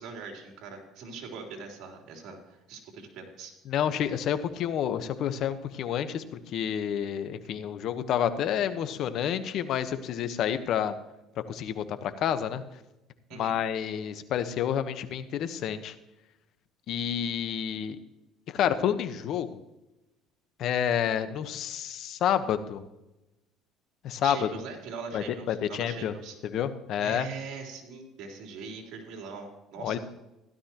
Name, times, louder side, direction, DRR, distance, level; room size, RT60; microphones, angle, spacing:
voice 1, 0.0-3.5 13.3-13.5 24.2-26.4 27.0-30.0, right 5 dB, 70° right, 1 dB, 3.5 m, -41 dB
voice 2, 3.7-6.2 6.5-10.9 11.5-12.6 13.3-15.9 16.9-18.0 18.5-19.6 20.6-22.8 24.0-24.5 25.1-26.1 26.5-27.3 29.8-30.0, left 9 dB, 60° left, 11 dB, 1.1 m, -29 dB
16.0 x 12.5 x 3.0 m, 0.94 s
cardioid pair, 115°, 0 cm